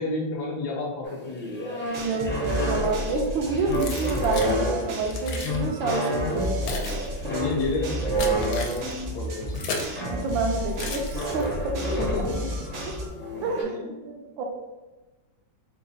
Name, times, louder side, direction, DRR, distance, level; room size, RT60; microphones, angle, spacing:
voice 1, 0.0-1.8 7.3-9.6 11.8-12.5 13.3-14.1, left 3 dB, 65° left, -2 dB, 1.1 m, -31 dB
sound 1, 1.0-9.2 10.0-10.3 11.1-12.2 12.6-13.6, right 1 dB, 15° left, 0.4 m, -30 dB
sound 2, 1.9-13.1, left 1 dB, 70° right, 0.7 m, -32 dB
voice 2, 1.9-7.1 10.1-12.1 13.4-14.4, right 3 dB, 85° right, 2 dB, 1.4 m, -29 dB
Keys jangling, 3.7-4.6 5.1-5.6 6.3-10.0 10.7-11.7, left 4 dB, 90° left, 1.4 m, -36 dB
3.8 x 3.4 x 2.7 m, 1.2 s
omnidirectional pair, 2.1 m